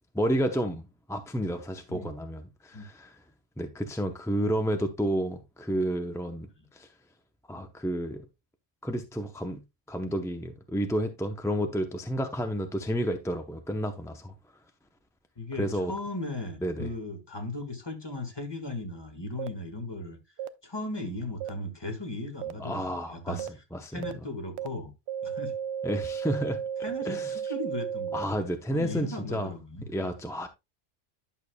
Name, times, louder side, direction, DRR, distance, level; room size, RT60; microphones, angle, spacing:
voice 1, 0.1-0.8 1.1-3.2 3.6-6.9 7.5-8.3 8.8-14.3 15.6-15.9 16.6-16.9 22.6-24.1 25.8-26.6 27.0-27.4 28.1-29.5 29.9-30.5, equal, 5° left, 0.4 m, -31 dB
voice 2, 15.3-20.2 20.6-23.4 23.9-24.9 25.2-25.6 26.8-29.9, left 2 dB, 20° left, 1.6 m, -37 dB
sound 1, 19.4-19.5 20.4-20.5 21.4-21.5 22.4-22.5 23.4-23.5 24.0-24.1 24.6-24.7 25.1-28.2, right 8 dB, 70° right, 0.8 m, -33 dB
11.0 x 6.6 x 2.2 m
omnidirectional pair, 1.3 m